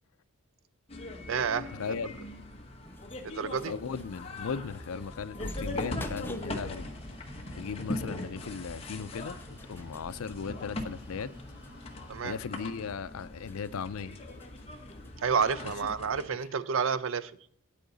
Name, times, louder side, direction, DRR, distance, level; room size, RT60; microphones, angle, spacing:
sound 1, 0.9-16.3, left 1 dB, 25° left, 1.1 m, -41 dB
voice 1, 1.3-1.7 3.2-3.7 12.1-12.4 15.2-17.3, right 6 dB, 65° right, 0.5 m, -29 dB
sound 2, 1.6-15.1, left 1 dB, 10° left, 0.4 m, -49 dB
voice 2, 1.8-2.2 3.6-6.9 7.5-11.3 12.2-14.2, left 6 dB, 80° left, 0.5 m, -37 dB
sound 3, 6.0-12.2, equal, 5° right, 1.5 m, -54 dB
9.3 x 8.5 x 4.0 m
head